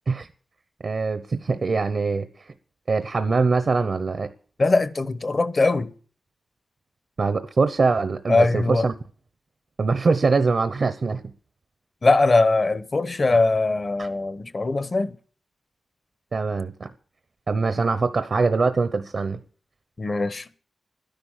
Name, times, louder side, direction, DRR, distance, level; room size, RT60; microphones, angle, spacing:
voice 1, 0.8-2.3 2.9-4.3 7.2-8.9 9.8-11.2 14.0-14.1 16.3-16.9 17.5-19.4, right 4 dB, 60° right, 0.9 m, -23 dB
voice 2, 4.6-5.9 8.3-8.9 12.0-15.2 20.0-20.5, left 3 dB, 45° left, 1.1 m, -21 dB
12.5 x 10.5 x 7.3 m
cardioid pair, 70°, 0 cm